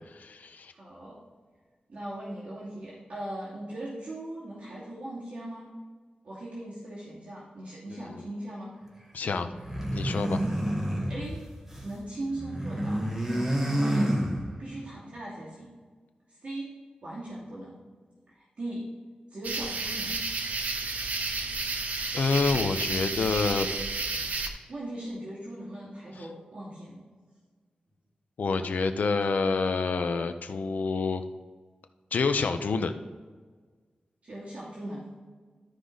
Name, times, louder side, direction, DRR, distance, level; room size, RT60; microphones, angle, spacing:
voice 1, 0.1-0.7 7.9-8.2 9.1-9.5 9.9-10.4 22.1-23.7 26.1-26.3 28.4-31.2 32.1-32.9, left 4 dB, 75° left, 8 dB, 0.7 m, -28 dB
voice 2, 0.7-1.2 1.9-5.7 6.2-8.7 10.4-10.8 11.1-11.4 11.8-13.0 13.8-14.1 14.6-15.7 16.4-16.7 17.0-17.8 18.6-18.8 19.3-20.2 24.7-27.0 34.2-35.2, right 1 dB, 50° right, -8 dB, 2.6 m, -39 dB
sound 1, 9.5-11.9 12.2-14.8, right 1 dB, 10° right, 1.4 m, -29 dB
sound 2, 19.4-24.5, right 3 dB, 70° right, 0.9 m, -31 dB
13.0 x 4.9 x 4.0 m, 1.5 s
wide cardioid pair, 140°, 3 cm